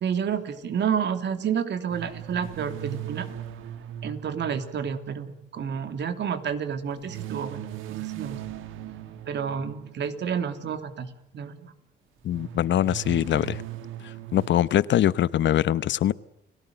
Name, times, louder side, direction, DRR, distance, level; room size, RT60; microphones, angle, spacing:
voice 1, 0.0-3.3 4.0-8.4 9.3-11.1 11.3-11.7, right 7 dB, 65° right, 3.0 m, -30 dB
sound 1, 1.9-5.4 7.1-10.2 12.3-14.5, right 11 dB, 90° right, 1.7 m, -38 dB
voice 2, 12.2-13.6 14.0-16.1, left 11 dB, 65° left, 0.9 m, -23 dB
30.0 x 18.0 x 7.9 m
cardioid pair, 90°, 20 cm